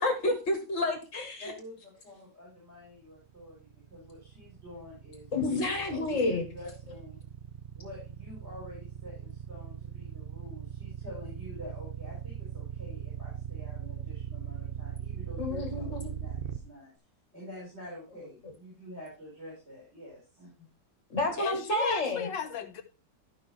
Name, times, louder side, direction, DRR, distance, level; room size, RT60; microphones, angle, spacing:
voice 1, 0.0-1.5 5.3-6.5 15.4-16.1 21.1-22.3, left 2 dB, 45° left, 1.6 m, -29 dB
voice 2, 1.4-7.2 7.7-16.9 17.3-20.7, left 1 dB, 35° right, 5.2 m, -47 dB
sound 1, 3.3-16.6, right 9 dB, 60° right, 0.5 m, -39 dB
voice 3, 21.4-22.8, left 8 dB, 85° left, 1.8 m, -36 dB
13.0 x 5.4 x 4.2 m
omnidirectional pair, 1.9 m